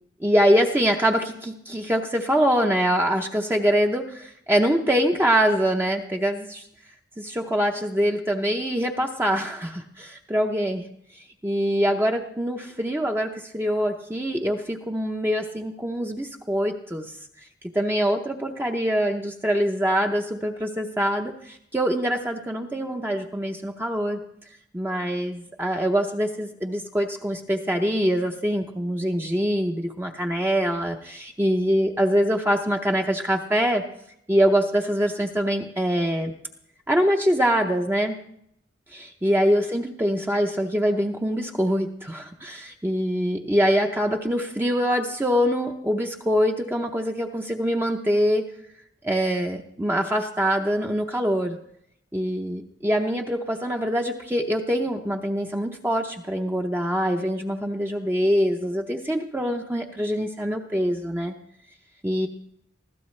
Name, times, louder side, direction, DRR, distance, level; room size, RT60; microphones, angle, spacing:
voice 1, 0.2-6.6 7.2-10.9 11.4-17.1 17.7-24.2 24.7-33.8 34.3-36.3 36.9-38.1 38.9-48.4 49.0-51.6 52.1-61.3 62.0-62.3, equal, 10° right, 2 dB, 0.7 m, -24 dB
21.0 x 15.0 x 3.2 m, 0.75 s
head